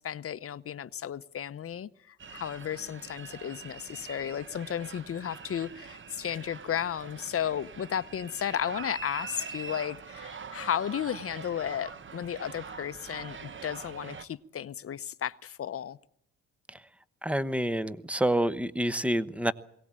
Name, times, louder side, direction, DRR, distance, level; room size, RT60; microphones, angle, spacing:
voice 1, 0.0-16.0, left 9 dB, 50° left, 0.9 m, -34 dB
sound 1, 2.2-14.3, right 5 dB, 40° right, 1.3 m, -44 dB
voice 2, 17.2-19.5, right 1 dB, 5° right, 1.0 m, -28 dB
22.0 x 18.0 x 8.8 m
cardioid pair, 90°, 30 cm